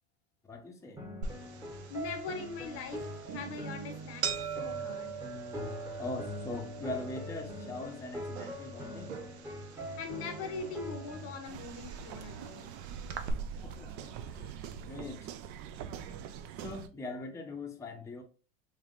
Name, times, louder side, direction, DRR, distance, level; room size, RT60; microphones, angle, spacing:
voice 1, 0.5-1.0 6.0-9.2 13.6-15.3 16.6-18.2, left 2 dB, 10° left, 0.7 m, -42 dB
sound 1, 1.0-11.4, equal, 10° right, 1.0 m, -43 dB
sound 2, 1.2-13.3, right 7 dB, 90° right, 0.6 m, -43 dB
voice 2, 1.9-5.1 9.8-12.7, left 4 dB, 45° left, 0.7 m, -41 dB
sound 3, 11.4-16.9, right 7 dB, 45° right, 0.5 m, -43 dB
3.4 x 3.2 x 2.4 m
hypercardioid pair, 95°, 32 cm